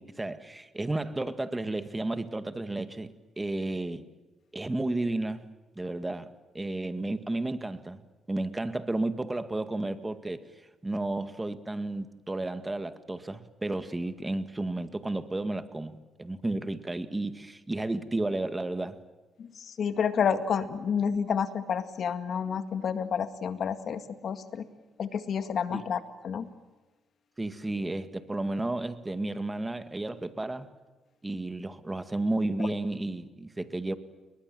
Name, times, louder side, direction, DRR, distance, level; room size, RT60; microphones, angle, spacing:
voice 1, 0.0-4.0 4.5-5.5 5.8-8.0 8.3-10.4 10.8-19.0 25.7-25.8 27.4-30.7 31.2-33.9, right 2 dB, 15° right, 10 dB, 1.9 m, -32 dB
voice 2, 19.8-24.7 25.0-26.5, left 7 dB, 60° left, 10 dB, 2.0 m, -29 dB
30.0 x 22.0 x 7.7 m, 1.2 s
cardioid pair, 90°, 0 cm